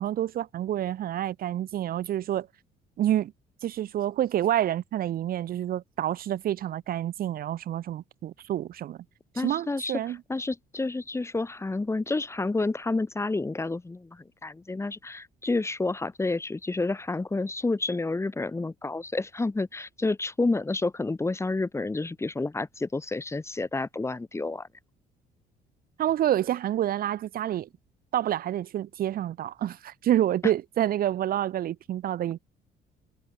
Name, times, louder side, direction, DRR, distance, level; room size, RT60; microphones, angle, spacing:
voice 1, 0.0-2.5 3.0-3.3 3.6-9.0 9.4-10.2 26.0-27.7 28.1-32.4, right 12 dB, 60° right, 2.1 m, -28 dB
voice 2, 9.3-10.0 10.3-24.7, left 3 dB, 15° left, 6.1 m, -29 dB
cardioid pair, 110°, 17 cm